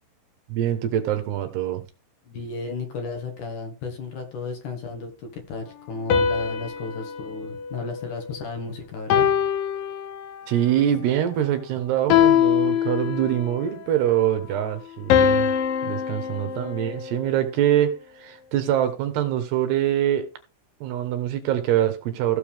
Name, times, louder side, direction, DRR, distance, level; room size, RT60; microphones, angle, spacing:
voice 1, 0.5-1.8 10.5-15.5 15.8-17.9 18.2-20.3 20.8-22.4, right 11 dB, 70° right, 2.9 m, -24 dB
voice 2, 2.3-9.3, left 4 dB, 55° left, 2.5 m, -34 dB
sound 1, 6.1-8.5 9.1-10.6 12.1-13.6 15.1-17.4, left 8 dB, 75° left, 2.1 m, -23 dB
15.5 x 6.8 x 3.5 m
omnidirectional pair, 5.4 m